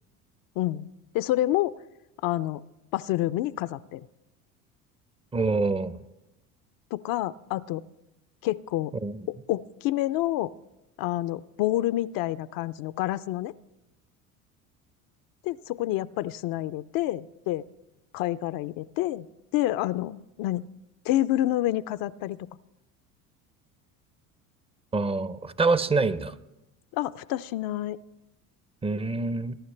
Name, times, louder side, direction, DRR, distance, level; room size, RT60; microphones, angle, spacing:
voice 1, 0.6-0.9 1.1-1.7 2.2-2.6 2.9-4.1 6.9-7.9 8.4-9.0 9.3-10.5 11.0-13.5 15.4-17.6 18.1-19.3 19.5-20.7 21.0-22.4 26.9-28.0, left 15 dB, 55° left, 15 dB, 0.5 m, -28 dB
voice 2, 5.3-6.0 9.0-9.2 24.9-26.3 28.8-29.6, right 3 dB, 15° right, 16 dB, 0.5 m, -26 dB
20.5 x 11.0 x 3.3 m, 0.96 s
hypercardioid pair, 75°, 41 cm